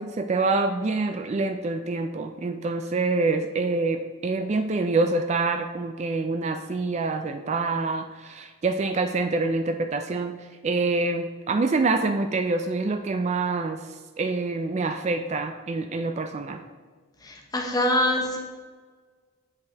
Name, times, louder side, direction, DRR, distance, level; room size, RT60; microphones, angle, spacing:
voice 1, 0.0-10.3 10.6-13.8 14.2-16.6, right 3 dB, 30° right, 7 dB, 0.3 m, -26 dB
voice 2, 17.2-18.4, left 1 dB, 15° left, 1 dB, 0.9 m, -24 dB
8.0 x 5.5 x 3.4 m, 1.4 s
head